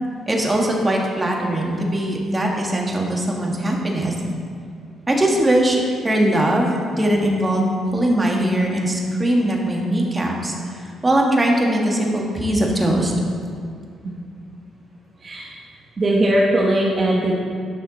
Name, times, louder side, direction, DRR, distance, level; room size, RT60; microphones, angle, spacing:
voice 1, 0.3-4.1 5.1-7.6 7.9-13.1, right 1 dB, 20° right, -1 dB, 1.5 m, -20 dB
voice 2, 15.2-15.6 16.0-17.3, right 1 dB, 35° right, -3 dB, 0.9 m, -19 dB
10.0 x 5.8 x 4.0 m, 2.3 s
cardioid pair, 90°, 0 cm